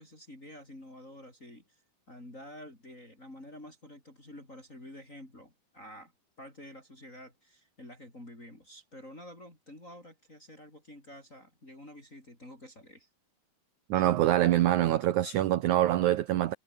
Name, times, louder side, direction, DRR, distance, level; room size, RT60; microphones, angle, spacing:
voice 1, 0.0-1.8 2.1-6.1 6.4-13.1, left 1 dB, 20° left, 7.3 m, -49 dB
voice 2, 13.9-16.5, right 13 dB, 70° right, 1.9 m, -25 dB
omnidirectional pair, 4.4 m